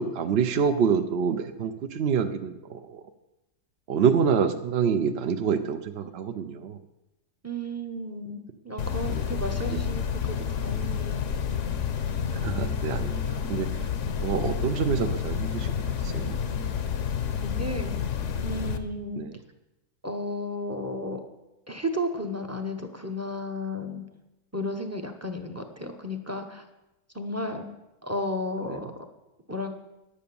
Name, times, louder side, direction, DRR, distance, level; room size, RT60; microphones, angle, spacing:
voice 1, 0.0-3.0 3.9-6.8 9.1-9.2 12.3-13.7 14.2-15.7 16.0-16.4 19.2-19.4, right 6 dB, 60° right, 7 dB, 0.6 m, -26 dB
voice 2, 7.4-11.2 17.4-18.0 18.4-19.2 20.0-21.2 21.7-24.0 24.5-26.6 27.1-27.7 28.0-28.9 29.5-29.7, left 1 dB, 15° right, 5 dB, 0.6 m, -33 dB
sound 1, 8.8-18.8, left 7 dB, 55° left, 1.0 m, -29 dB
10.5 x 8.6 x 6.9 m, 0.96 s
omnidirectional pair, 1.7 m